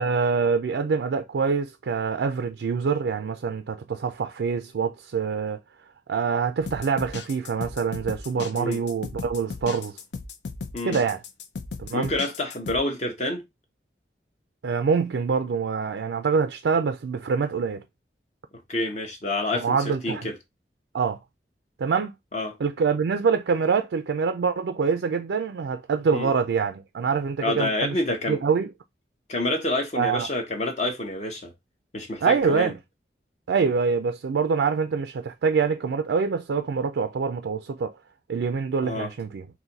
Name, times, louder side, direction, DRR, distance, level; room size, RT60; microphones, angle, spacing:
voice 1, 0.0-5.6 6.1-9.9 10.8-11.2 11.8-12.1 14.6-17.8 19.5-20.3 20.9-21.2 21.8-22.1 22.6-28.0 28.3-28.7 30.0-30.3 32.2-32.7 33.5-37.9 38.3-39.4, right 5 dB, 85° right, 0.4 m, -25 dB
sound 1, 6.6-12.8, left 4 dB, 80° left, 0.6 m, -36 dB
voice 2, 11.9-13.4 18.7-20.4 22.3-22.6 26.1-26.3 27.4-28.4 29.3-31.5 31.9-32.7 38.8-39.1, left 1 dB, 40° left, 0.7 m, -28 dB
4.0 x 2.6 x 3.9 m
head